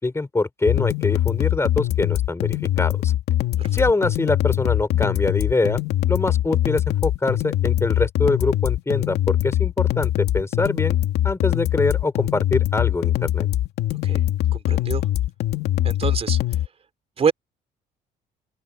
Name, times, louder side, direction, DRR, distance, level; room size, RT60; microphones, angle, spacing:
voice 1, 0.0-3.1 3.7-5.8 6.1-11.0 11.2-13.5, left 2 dB, 15° left, 4.3 m, -24 dB
sound 1, 0.7-16.7, left 13 dB, 75° left, 2.6 m, -22 dB
voice 2, 14.5-15.1 15.8-16.6 17.2-17.3, right 6 dB, 35° right, 3.5 m, -26 dB
open air
cardioid pair, 110°, 17 cm